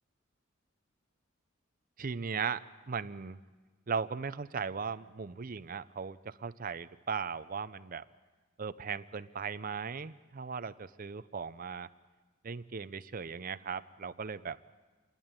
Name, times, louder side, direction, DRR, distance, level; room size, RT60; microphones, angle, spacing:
voice 1, 2.0-3.4 3.9-8.0 8.6-11.9 12.4-14.6, right 6 dB, 40° right, 14 dB, 0.5 m, -38 dB
27.5 x 11.5 x 9.0 m, 1.3 s
head